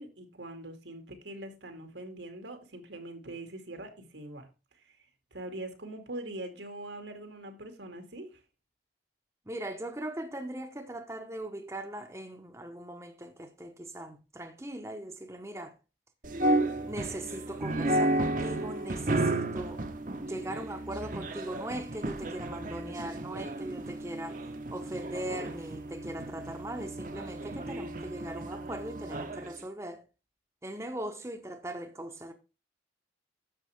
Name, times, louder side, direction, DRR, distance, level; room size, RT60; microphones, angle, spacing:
voice 1, 0.0-4.5 4.7-5.0 5.3-8.4, right 1 dB, 85° right, 2.4 m, -43 dB
voice 2, 9.5-15.7 16.9-19.8 20.2-24.4 24.7-30.0 30.6-32.3, right 1 dB, 15° right, 0.9 m, -40 dB
sound 1, 16.2-29.5, right 1 dB, 45° right, 1.0 m, -33 dB
10.5 x 7.4 x 3.5 m
head